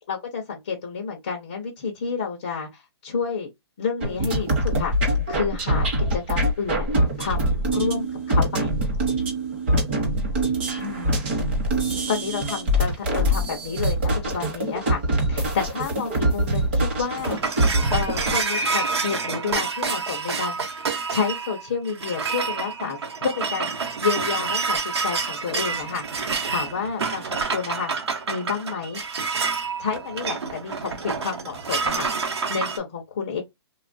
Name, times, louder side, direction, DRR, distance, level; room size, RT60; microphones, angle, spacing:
voice 1, 0.1-3.5 3.8-4.9 5.3-6.9 7.2-8.7 10.8-11.2 11.9-15.0 15.3-17.4 17.9-20.8 21.1-26.0 26.5-27.9 28.3-29.0 29.8-32.1 32.5-33.4, left 6 dB, 15° left, 0.3 m, -30 dB
sound 1, 4.0-18.4, right 1 dB, 25° right, 0.7 m, -24 dB
sound 2, 17.0-32.8, right 4 dB, 75° right, 0.8 m, -28 dB
3.1 x 2.1 x 2.4 m
hypercardioid pair, 175°, 14 cm